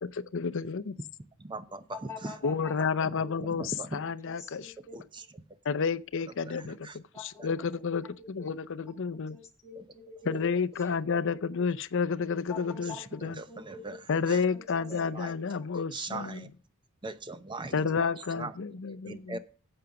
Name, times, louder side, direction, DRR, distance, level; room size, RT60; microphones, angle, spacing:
voice 1, 0.0-1.0 2.4-4.7 5.6-9.4 10.2-13.4 14.1-16.5 17.7-19.4, left 5 dB, 60° left, 0.5 m, -31 dB
voice 2, 1.4-2.4 3.0-3.1 3.4-3.9 4.9-5.4 6.4-7.0 7.4-7.5 9.8-9.9 13.2-14.4 14.9-15.3 15.9-16.5 17.0-17.8 18.4-18.5 19.1-19.4, right 3 dB, 20° right, 0.7 m, -40 dB
voice 3, 1.9-2.8 3.1-3.4 4.4-4.9 7.1-7.5 8.0-8.5 9.3-10.3 12.5-14.0 14.8-15.1, left 5 dB, 15° left, 2.0 m, -46 dB
8.9 x 7.8 x 5.8 m
head